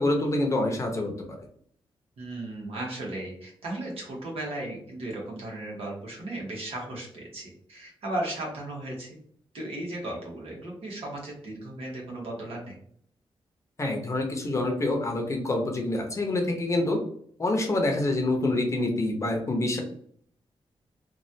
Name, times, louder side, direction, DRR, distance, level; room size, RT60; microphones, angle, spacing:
voice 1, 0.0-1.4 13.8-17.0 17.4-19.8, left 2 dB, 30° left, 2 dB, 0.7 m, -26 dB
voice 2, 2.2-9.2 9.5-12.7, right 1 dB, 75° right, -3 dB, 1.3 m, -36 dB
3.1 x 2.4 x 2.7 m, 0.62 s
wide cardioid pair, 135°, 10 cm